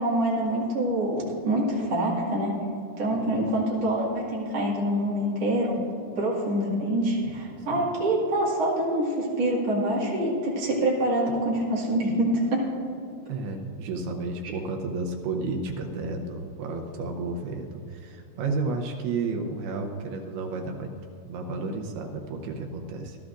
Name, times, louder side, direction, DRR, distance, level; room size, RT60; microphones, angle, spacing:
voice 1, 0.0-2.5 3.0-5.8 6.2-12.6, right 1 dB, 45° right, -5 dB, 2.4 m, -25 dB
voice 2, 3.1-3.5 13.3-20.9 21.3-23.2, right 3 dB, 80° right, 2 dB, 2.3 m, -32 dB
19.0 x 12.5 x 2.5 m, 2.5 s
omnidirectional pair, 5.3 m